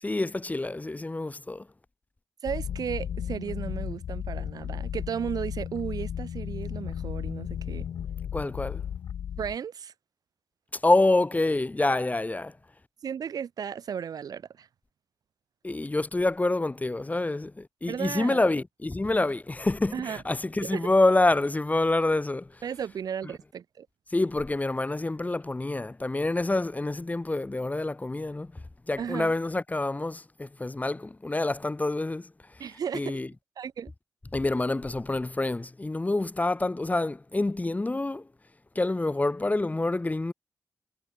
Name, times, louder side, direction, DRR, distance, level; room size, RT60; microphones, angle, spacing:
voice 1, 0.0-1.7 8.3-8.8 10.8-12.6 15.6-22.5 24.1-28.5 28.9-32.3 32.9-33.3 34.3-38.3 38.8-40.3, left 2 dB, 25° left, 0.7 m, -27 dB
voice 2, 2.4-7.9 9.4-9.9 13.0-14.7 17.9-18.4 19.9-20.2 20.6-20.9 22.6-23.9 29.0-29.3 32.6-33.2 33.6-33.9, right 8 dB, 80° right, 0.7 m, -34 dB
sound 1, 2.5-9.6, left 9 dB, 85° left, 0.4 m, -34 dB
cardioid pair, 45°, 6 cm